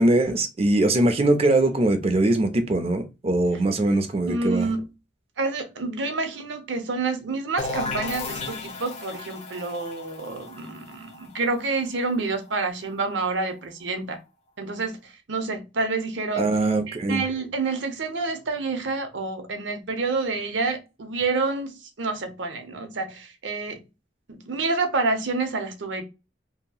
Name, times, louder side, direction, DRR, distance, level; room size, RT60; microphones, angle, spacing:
voice 1, 0.0-4.7 16.3-17.2, right 2 dB, 35° right, 0.5 m, -21 dB
voice 2, 4.3-4.9 5.4-14.2 14.6-16.5 16.9-23.8 24.3-26.0, right 3 dB, 80° right, 0.7 m, -28 dB
sound 1, 7.6-13.2, left 3 dB, 35° left, 0.6 m, -35 dB
2.8 x 2.8 x 2.3 m
head